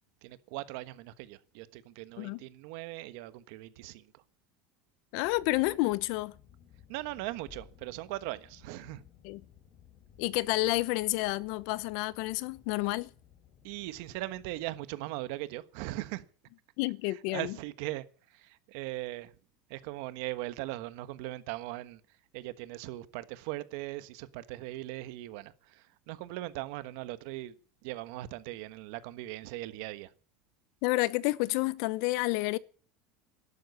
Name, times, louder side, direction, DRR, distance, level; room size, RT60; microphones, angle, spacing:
voice 1, 0.2-4.2 6.9-9.0 12.9-13.0 13.6-16.2 17.0-19.3 19.7-22.0 22.3-27.6 27.8-30.1, right 17 dB, 55° right, 1.3 m, -39 dB
voice 2, 5.1-6.3 9.2-9.4 10.2-13.1 16.8-17.5 30.8-32.6, left 20 dB, 55° left, 0.9 m, -30 dB
sound 1, 5.2-14.8, left 9 dB, 35° left, 2.4 m, -58 dB
12.5 x 12.0 x 9.6 m
cardioid pair, 175°, 0 cm